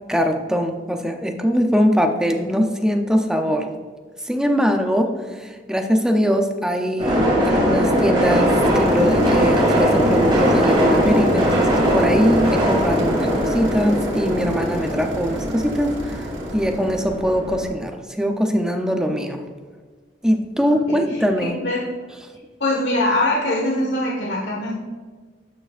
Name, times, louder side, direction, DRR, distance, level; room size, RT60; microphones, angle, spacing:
voice 1, 0.1-3.7 4.3-16.2 16.5-17.9 18.2-19.4 20.2-21.6, equal, 5° right, 4 dB, 0.6 m, -22 dB
sound 1, 7.0-17.6, equal, 25° right, 2.2 m, -20 dB
sound 2, 8.7-17.3, right 2 dB, 85° right, 1.2 m, -36 dB
voice 2, 20.9-21.8 22.6-24.7, left 1 dB, 70° left, -3 dB, 1.5 m, -23 dB
11.5 x 6.6 x 2.5 m, 1.4 s
head